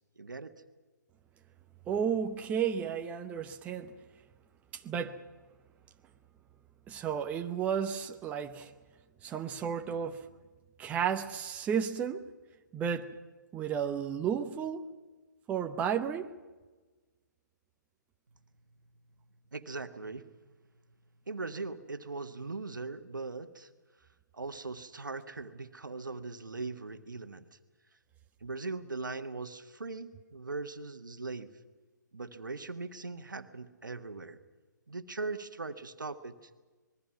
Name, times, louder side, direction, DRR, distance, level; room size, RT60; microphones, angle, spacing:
voice 1, 0.2-0.5 19.5-20.3 21.3-23.7 24.3-27.6 28.4-31.5 32.1-34.4 34.9-36.5, right 3 dB, 80° right, 1.5 m, -40 dB
voice 2, 1.9-3.9 4.7-5.2 6.9-8.7 9.2-10.3 10.8-12.3 12.7-13.1 13.5-14.9 15.5-16.3, right 8 dB, 15° right, 0.9 m, -33 dB
26.5 x 21.0 x 5.9 m
figure-of-eight pair, 135°, 10 cm